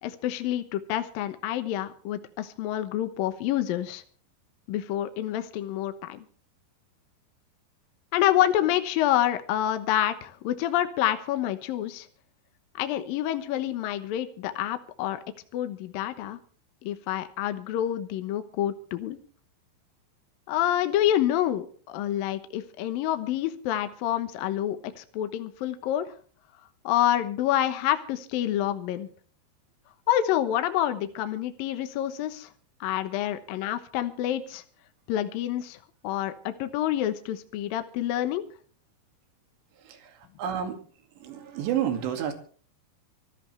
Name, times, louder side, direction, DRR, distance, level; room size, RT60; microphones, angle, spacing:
voice 1, 0.0-4.0 4.7-6.2 8.1-12.1 12.8-15.2 15.5-16.4 16.8-19.2 20.5-26.1 26.8-29.1 30.1-32.5 32.8-34.6 35.1-35.8 36.0-38.4, left 12 dB, 70° left, 10 dB, 2.3 m, -27 dB
voice 2, 40.4-40.8 41.2-42.3, right 9 dB, 75° right, 6 dB, 4.5 m, -29 dB
25.5 x 13.5 x 3.3 m, 0.43 s
omnidirectional pair, 5.3 m